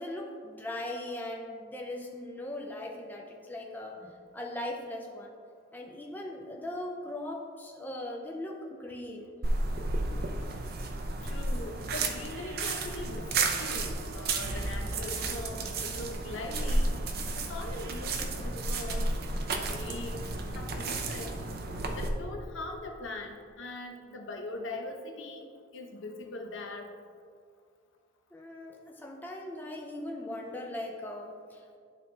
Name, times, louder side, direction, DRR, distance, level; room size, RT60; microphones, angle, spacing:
voice 1, 0.0-5.4 5.7-9.4 28.3-31.8, left 1 dB, 10° left, 0 dB, 0.5 m, -39 dB
sound 1, 9.4-22.1, right 2 dB, 50° right, 0.6 m, -32 dB
voice 2, 11.2-16.9 17.3-19.1 19.6-20.3 20.5-21.3 22.0-25.4 25.7-26.9, left 2 dB, 70° left, 3 dB, 0.8 m, -41 dB
11.5 x 4.1 x 3.3 m, 2.1 s
head